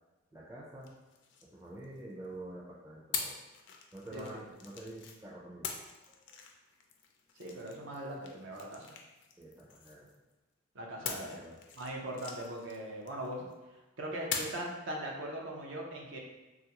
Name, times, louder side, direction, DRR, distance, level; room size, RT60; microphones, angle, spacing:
voice 1, 0.3-0.9 1.4-3.4 3.9-5.8 6.1-6.2 9.4-10.1 10.9-11.6, right 1 dB, 15° right, -6 dB, 0.4 m, -47 dB
sound 1, 0.8-2.3 3.1-5.2 5.6-10.3 11.0-13.5 14.3-14.7, left 6 dB, 55° left, 0.3 m, -43 dB
voice 2, 7.4-8.9 10.7-11.4 11.8-13.5 14.0-16.2, right 1 dB, 65° right, -1 dB, 0.5 m, -40 dB
3.1 x 2.4 x 2.8 m, 1.1 s
head